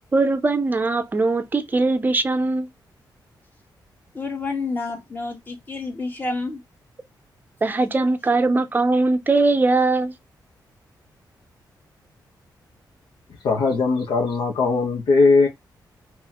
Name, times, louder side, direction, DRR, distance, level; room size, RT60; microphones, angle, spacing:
voice 1, 0.1-2.7 7.6-10.1, right 3 dB, 25° right, 0.5 m, -20 dB
voice 2, 4.1-6.6, left 3 dB, 25° left, 1.3 m, -29 dB
voice 3, 13.4-15.5, left 4 dB, 80° left, 1.0 m, -19 dB
4.0 x 3.0 x 2.9 m
wide cardioid pair, 130°, 8 cm